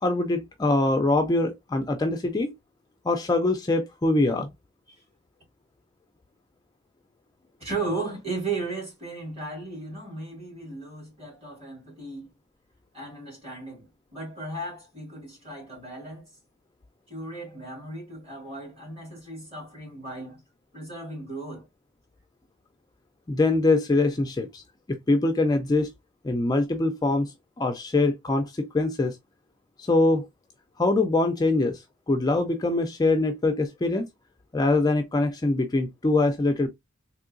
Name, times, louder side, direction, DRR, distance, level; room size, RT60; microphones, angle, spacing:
voice 1, 0.0-2.5 3.1-4.5 23.3-24.6 24.9-25.9 26.2-29.2 29.8-30.3 30.8-34.1 34.5-36.7, left 2 dB, 20° left, 0.3 m, -23 dB
voice 2, 7.6-12.3 12.9-16.3 17.1-20.4 20.7-21.7, right 3 dB, 30° right, 2.1 m, -35 dB
3.7 x 3.0 x 2.4 m
head